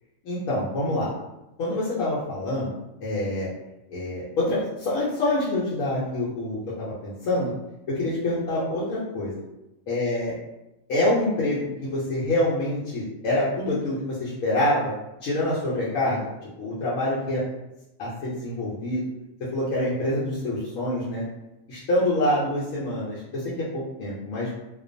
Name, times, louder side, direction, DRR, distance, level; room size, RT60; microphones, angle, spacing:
voice 1, 0.2-1.1 1.6-2.7 3.0-3.5 3.9-7.5 7.9-9.3 9.9-10.3 10.9-14.9 15.2-16.3 16.6-17.4 18.0-19.1 19.5-21.2 21.7-24.5, left 1 dB, 85° left, -7 dB, 1.0 m, -26 dB
2.4 x 2.2 x 2.5 m, 0.94 s
omnidirectional pair, 1.4 m